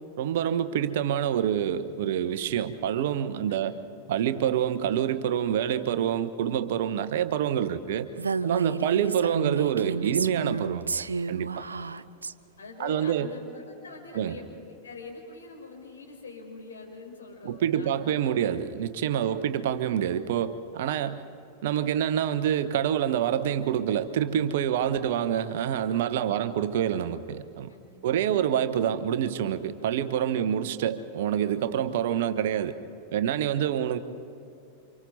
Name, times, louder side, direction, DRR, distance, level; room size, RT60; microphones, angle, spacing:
voice 1, 0.2-3.8 4.1-8.1 8.4-10.9 11.3-11.5 12.8-13.3 14.1-14.4 17.4-21.2 21.6-27.7 28.0-32.8 33.1-34.0, right 9 dB, 55° right, 12 dB, 1.0 m, -27 dB
voice 2, 3.5-3.8 8.4-9.0 11.5-12.2 12.6-14.5 14.8-18.4 19.2-19.5 26.3-26.6 27.7-28.3 30.3-30.6 33.6-33.7, left 4 dB, 70° left, 0 dB, 4.9 m, -45 dB
Female speech woman speaking, 8.2-12.3, right 5 dB, 75° right, 0.4 m, -31 dB
29.0 x 26.5 x 4.1 m, 2.6 s
figure-of-eight pair, 90°, 0 cm